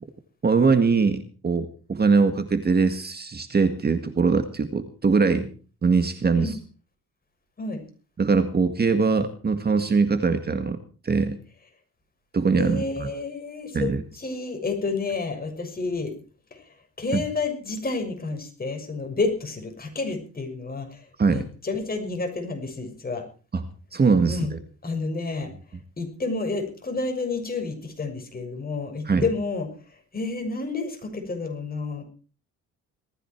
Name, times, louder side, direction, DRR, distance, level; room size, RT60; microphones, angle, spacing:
voice 1, 0.4-5.5 5.8-6.6 8.2-10.8 11.0-11.4 12.3-13.1 13.7-14.0 17.1-17.2 21.2-21.4 23.5-23.6 23.9-24.5 29.1-29.2, right 4 dB, 30° right, 9 dB, 1.9 m, -22 dB
voice 2, 12.6-16.1 16.5-23.2 24.3-24.5 24.8-25.5 26.0-32.0, left 3 dB, 30° left, 4 dB, 6.5 m, -30 dB
19.0 x 14.5 x 4.6 m, 0.39 s
cardioid pair, 90°, 30 cm